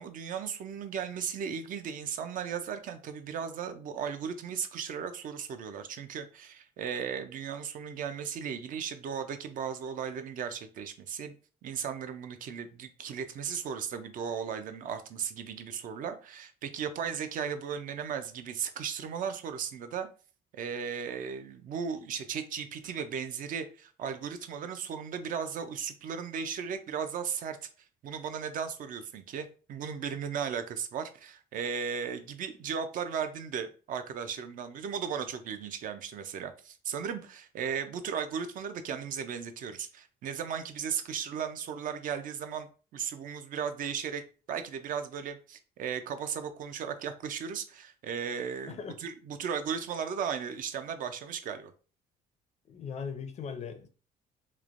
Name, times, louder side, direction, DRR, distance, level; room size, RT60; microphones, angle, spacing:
voice 1, 0.0-11.3 11.6-20.1 20.5-27.6 28.0-44.2 44.5-51.7, right 7 dB, 55° right, 0.4 m, -36 dB
voice 2, 48.7-49.0 52.7-53.9, left 6 dB, 40° left, 0.4 m, -39 dB
3.1 x 2.1 x 2.4 m
cardioid pair, 110°, 17 cm